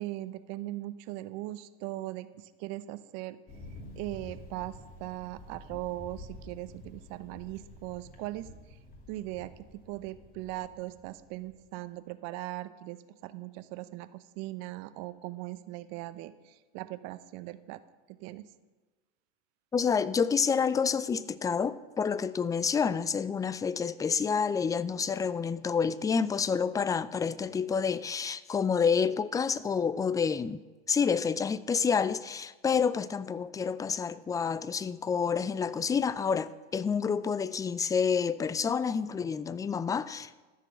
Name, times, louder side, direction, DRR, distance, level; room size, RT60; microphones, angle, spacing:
voice 1, 0.0-3.4 4.0-8.5 9.1-9.5 9.9-17.8 18.2-18.4, right 17 dB, 50° right, 0.8 m, -39 dB
Thunder, 3.5-11.7, left 2 dB, 25° left, 2.8 m, -49 dB
voice 2, 19.7-30.6 30.9-40.4, left 6 dB, 10° left, 0.4 m, -28 dB
14.0 x 6.8 x 7.5 m
hypercardioid pair, 85°, 33 cm